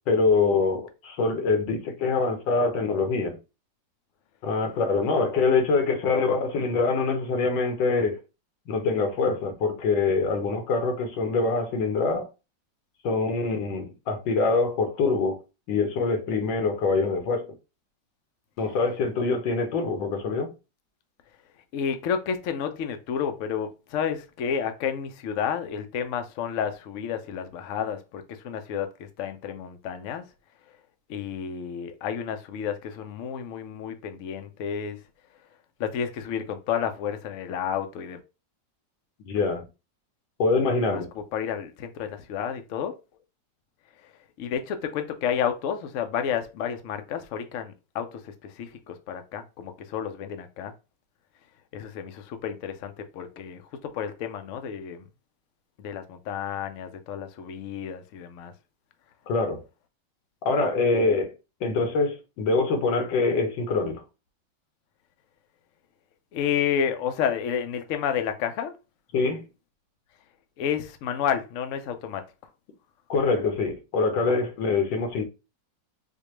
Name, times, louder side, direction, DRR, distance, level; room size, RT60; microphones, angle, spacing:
voice 1, 0.1-3.4 4.4-8.2 8.7-12.3 13.0-15.4 15.7-17.5 18.6-20.5 39.2-39.6 40.4-41.1 59.3-59.6 60.4-61.3 61.6-64.0 69.1-69.4 73.1-75.2, left 4 dB, 90° left, 1.6 m, -24 dB
voice 2, 21.7-30.3 31.1-35.0 35.8-38.2 40.8-43.0 44.0-44.1 44.4-50.7 51.7-55.1 55.8-58.5 66.3-68.8 70.6-72.3, left 8 dB, 75° left, 0.7 m, -31 dB
4.6 x 2.2 x 2.9 m
omnidirectional pair, 2.0 m